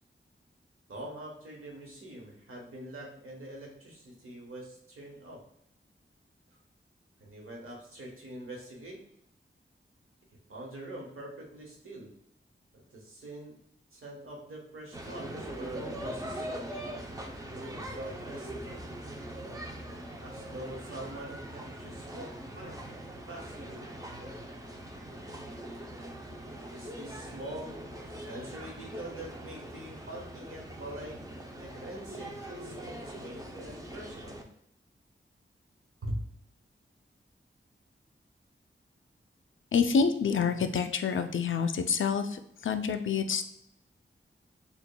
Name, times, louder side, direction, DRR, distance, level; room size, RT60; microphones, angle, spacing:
voice 1, 0.9-5.5 7.2-9.1 10.5-12.1 12.7-13.6 13.9-16.8 17.5-18.5 20.2-22.8 23.3-23.9 26.5-34.4 36.0-36.2, right 1 dB, 90° right, -1 dB, 1.1 m, -44 dB
sound 1, 14.9-34.4, right 1 dB, 15° right, 0.5 m, -42 dB
voice 2, 39.7-43.5, left 6 dB, 70° left, 8 dB, 0.4 m, -27 dB
6.7 x 2.3 x 2.2 m, 0.73 s
wide cardioid pair, 95°, 21 cm